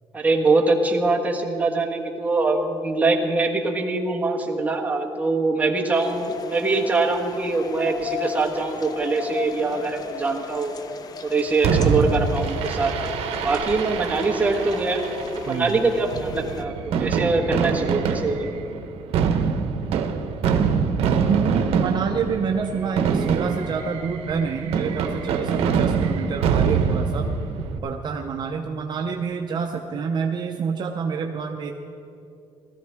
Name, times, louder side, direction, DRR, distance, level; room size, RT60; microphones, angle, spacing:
voice 1, 0.1-10.7 11.2-12.9 13.4-18.5, right 3 dB, 15° right, 0 dB, 1.3 m, -23 dB
sound 1, 5.9-16.6, left 6 dB, 40° left, 0.6 m, -35 dB
Fireworks, 11.6-27.8, right 6 dB, 80° right, 0.9 m, -25 dB
voice 2, 15.5-15.8 21.3-27.3 27.8-31.7, right 6 dB, 45° right, 3 dB, 0.7 m, -27 dB
18.5 x 13.5 x 3.5 m, 2.6 s
cardioid pair, 135°, 10 cm